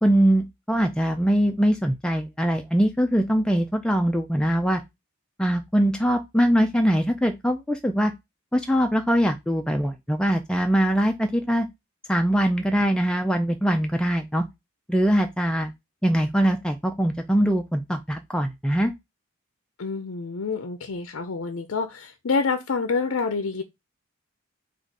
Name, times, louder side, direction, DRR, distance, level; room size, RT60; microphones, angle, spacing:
voice 1, 0.0-4.8 5.4-8.1 8.5-11.7 12.1-14.4 14.9-15.7 16.0-18.9, equal, 5° left, 0.3 m, -22 dB
voice 2, 19.8-23.6, left 4 dB, 65° left, 0.5 m, -27 dB
4.0 x 2.4 x 4.6 m
head